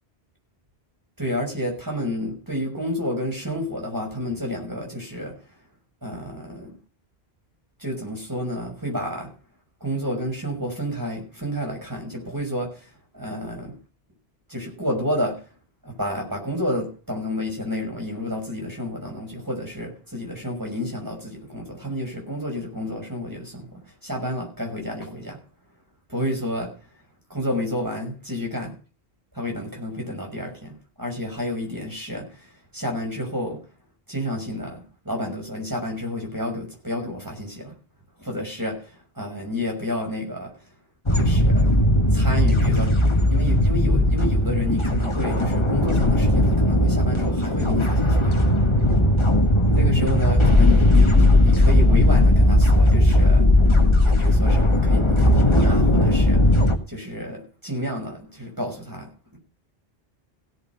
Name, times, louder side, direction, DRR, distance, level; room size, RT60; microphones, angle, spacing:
voice 1, 1.2-5.4 6.0-6.7 7.8-9.3 9.8-13.8 14.5-15.4 15.8-25.4 26.1-26.9 27.3-28.7 29.3-33.6 34.1-37.8 38.2-40.7 41.1-41.7 42.1-42.9 43.3-48.4 49.7-53.5 54.0-56.4 56.9-59.4, left 1 dB, 20° right, 6.2 m, -30 dB
sound 1, 41.1-56.8, left 1 dB, 25° left, 1.8 m, -17 dB
17.0 x 8.0 x 5.7 m
omnidirectional pair, 1.1 m